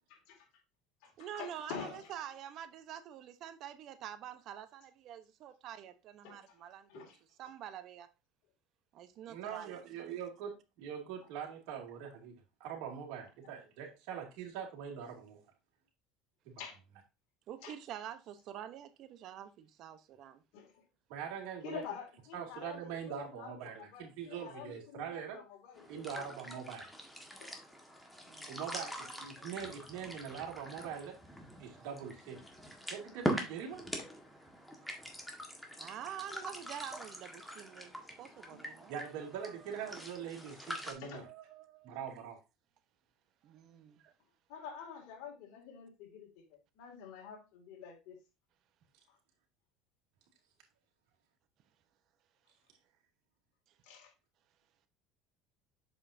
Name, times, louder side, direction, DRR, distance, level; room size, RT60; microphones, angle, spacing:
voice 1, 0.1-0.5 1.0-2.1 6.2-6.6 6.9-7.2 16.6-16.8 17.6-17.8 20.5-20.8 21.6-26.3 27.4-27.5 33.9-34.1 38.2-38.6 41.0-41.3 44.5-46.4 46.8-48.2 53.8-54.1, left 7 dB, 70° left, 2.4 m, -48 dB
voice 2, 1.2-8.1 8.9-9.8 17.5-20.4 28.2-28.6 31.7-31.9 35.8-39.5 41.2-42.0 43.4-44.1, right 10 dB, 55° right, 0.9 m, -47 dB
voice 3, 9.3-12.3 12.6-15.4 16.4-16.6 21.1-21.8 22.3-25.4 25.9-26.8 28.5-31.1 31.6-32.4 32.9-33.8 34.8-35.0 38.9-41.2 41.8-42.4, right 8 dB, 70° right, 2.6 m, -43 dB
sound 1, 25.8-40.9, equal, 5° left, 1.6 m, -43 dB
7.2 x 5.6 x 2.7 m
supercardioid pair, 110°, 0 cm